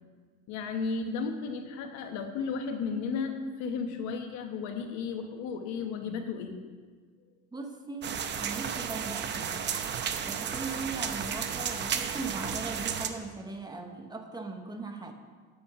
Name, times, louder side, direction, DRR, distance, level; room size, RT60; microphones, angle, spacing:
voice 1, 0.5-6.6, left 5 dB, 75° left, 6 dB, 1.3 m, -34 dB
voice 2, 7.5-9.6 10.2-15.1, right 3 dB, 15° right, 4 dB, 1.0 m, -39 dB
sound 1, 8.0-13.1, right 7 dB, 40° right, 0.8 m, -33 dB
8.7 x 8.4 x 5.9 m, 1.5 s
cardioid pair, 135°, 29 cm